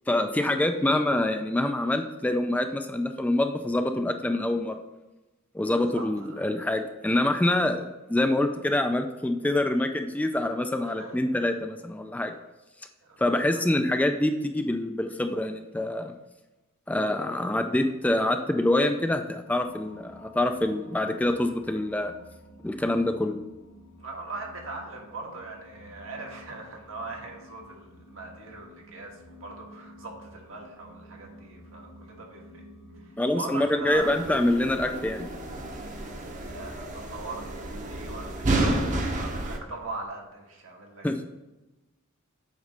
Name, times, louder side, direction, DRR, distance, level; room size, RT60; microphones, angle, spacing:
voice 1, 0.1-4.8 5.5-12.3 13.2-16.1 16.9-22.1 22.6-23.4 33.2-35.3 41.0-41.2, left 1 dB, 5° left, 6 dB, 0.3 m, -26 dB
voice 2, 5.7-6.5 10.8-11.2 13.0-13.2 13.5-13.6 24.0-32.6 33.0-34.2 36.2-41.1, right 3 dB, 80° right, 0 dB, 1.5 m, -40 dB
sound 1, 19.5-39.1, equal, 80° left, 1.5 m, -51 dB
sound 2, 33.9-39.6, right 1 dB, 40° right, 0.8 m, -31 dB
8.1 x 3.1 x 5.2 m, 1.0 s
head